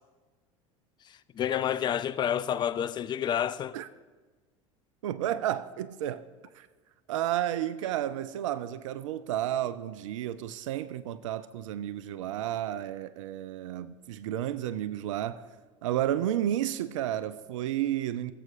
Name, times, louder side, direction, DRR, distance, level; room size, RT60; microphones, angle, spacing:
voice 1, 1.0-3.8, left 9 dB, 25° left, 0.4 m, -29 dB
voice 2, 5.0-6.3 6.6-6.7 7.1-15.4 15.8-18.3, right 12 dB, 65° right, 0.5 m, -32 dB
21.5 x 7.6 x 2.5 m
figure-of-eight pair, 75°, 17 cm